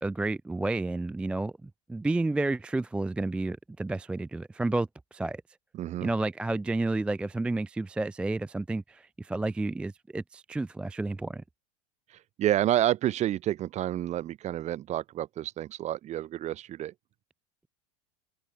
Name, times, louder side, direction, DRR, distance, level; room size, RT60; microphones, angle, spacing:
voice 1, 0.0-5.4 6.0-11.4, right 2 dB, 5° right, 0.3 m, -31 dB
voice 2, 5.7-6.1 12.1-16.9, right 13 dB, 35° right, 2.1 m, -29 dB
supercardioid pair, 125°, 19 cm